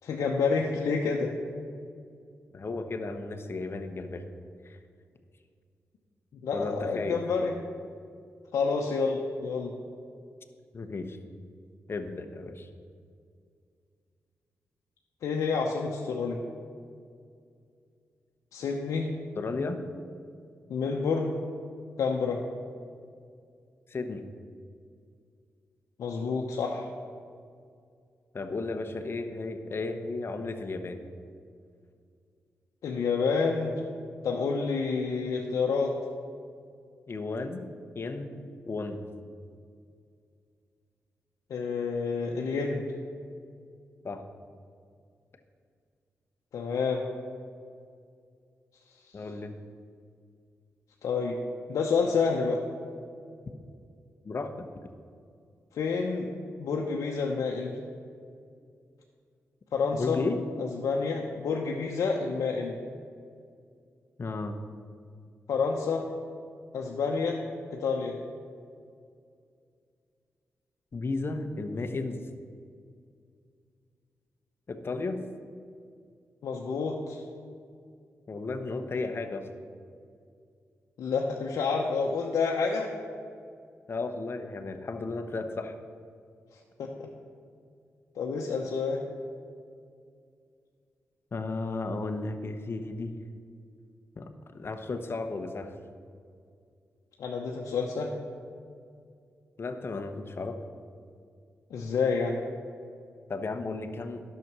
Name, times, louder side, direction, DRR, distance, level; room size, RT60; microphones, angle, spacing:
voice 1, 0.0-1.3 6.4-7.5 8.5-9.7 15.2-16.4 18.5-19.1 20.7-21.3 22.0-22.4 26.0-26.9 32.8-33.8 34.2-35.9 41.5-42.8 46.5-47.0 51.0-51.4 51.7-52.6 55.7-56.3 56.6-57.8 59.7-60.2 60.6-62.7 65.5-66.0 66.7-67.4 67.7-68.1 76.4-77.2 81.0-82.9 86.8-87.1 88.2-89.0 97.2-98.1 101.7-102.4, left 5 dB, 85° left, -1 dB, 0.8 m, -28 dB
voice 2, 2.5-4.2 4.6-4.8 6.5-7.2 10.7-11.2 11.9-12.7 19.4-19.8 23.9-24.2 28.3-31.0 37.1-37.7 37.9-39.0 44.0-44.2 49.1-49.6 54.2-54.7 59.9-60.4 64.2-64.5 70.9-72.2 74.7-75.2 78.3-79.5 83.9-85.7 91.3-93.1 94.2-94.3 94.5-95.7 99.6-100.6 103.3-104.2, left 3 dB, 45° left, 6 dB, 0.9 m, -34 dB
10.5 x 6.7 x 6.1 m, 2.3 s
cardioid pair, 60°, 5 cm